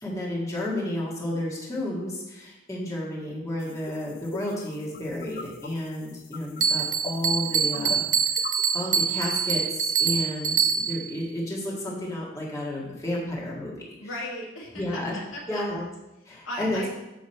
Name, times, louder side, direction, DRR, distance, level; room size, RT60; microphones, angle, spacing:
voice 1, 0.0-8.0 8.4-8.5 8.7-13.7 14.7-15.1 15.5-15.8 16.3-16.8, left 1 dB, 15° left, -5 dB, 1.7 m, -31 dB
sound 1, 3.6-8.9, left 4 dB, 45° left, 0.5 m, -43 dB
Bell, 6.6-11.1, right 7 dB, 40° right, 0.5 m, -25 dB
voice 2, 14.0-15.6 16.3-16.9, left 1 dB, 70° left, -3 dB, 1.9 m, -37 dB
7.1 x 6.2 x 4.3 m, 0.96 s
head